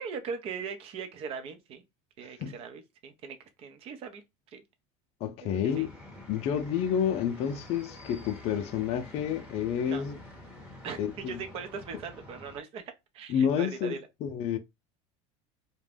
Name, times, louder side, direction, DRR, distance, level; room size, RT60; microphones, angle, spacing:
voice 1, 0.0-1.8 2.2-4.2 4.5-4.6 5.4-5.9 9.8-10.0 10.8-14.1, right 6 dB, 40° right, 0.6 m, -40 dB
voice 2, 5.2-5.9 6.3-10.2 11.0-11.4 13.3-14.6, left 8 dB, 45° left, 0.4 m, -29 dB
sound 1, 5.7-12.6, left 1 dB, 5° right, 0.9 m, -48 dB
2.5 x 2.2 x 3.3 m
cardioid pair, 145°, 14 cm